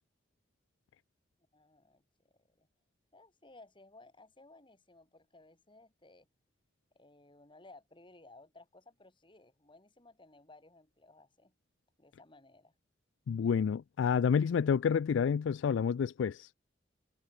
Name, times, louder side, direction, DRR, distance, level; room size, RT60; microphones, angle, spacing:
voice 1, 1.5-2.7 3.1-6.3 6.9-11.5 12.0-12.7, left 2 dB, 25° left, 3.2 m, -59 dB
voice 2, 13.3-16.5, left 6 dB, 75° left, 0.3 m, -29 dB
head